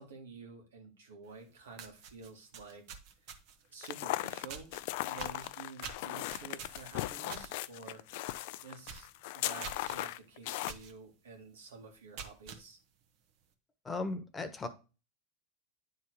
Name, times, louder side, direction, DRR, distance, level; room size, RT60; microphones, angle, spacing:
voice 1, 0.0-3.3 3.7-4.7 5.0-8.0 8.6-9.1 9.3-12.8, right 4 dB, 90° right, 2 dB, 2.3 m, -50 dB
sound 1, 1.3-1.4 1.7-3.7 4.5-4.8 5.2-7.5 7.9-8.1 8.4-8.5 8.8-9.1 9.6-10.0 10.7-10.9 11.4-11.5 12.0-12.6, right 6 dB, 60° right, 1.4 m, -46 dB
sound 2, 3.8-10.7, left 16 dB, 65° left, 0.4 m, -38 dB
voice 2, 13.8-14.7, left 3 dB, 20° left, 8 dB, 1.2 m, -36 dB
9.6 x 3.8 x 4.7 m, 0.32 s
hypercardioid pair, 100°, 0 cm